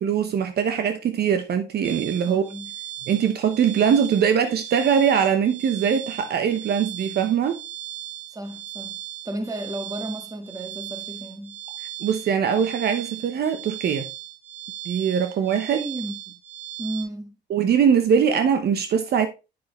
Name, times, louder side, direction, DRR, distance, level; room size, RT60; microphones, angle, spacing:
voice 1, 0.0-2.4 3.1-7.6 12.0-14.1 14.8-15.8 17.5-19.3, right 7 dB, 60° right, 0.9 m, -22 dB
sound 1, 1.8-17.0, right 13 dB, 40° right, 4.2 m, -38 dB
voice 2, 2.3-2.7 8.3-9.0 9.2-11.6 15.7-16.1 16.8-17.3, right 1 dB, 20° right, 1.7 m, -33 dB
8.6 x 6.2 x 3.1 m
supercardioid pair, 80°, 19 cm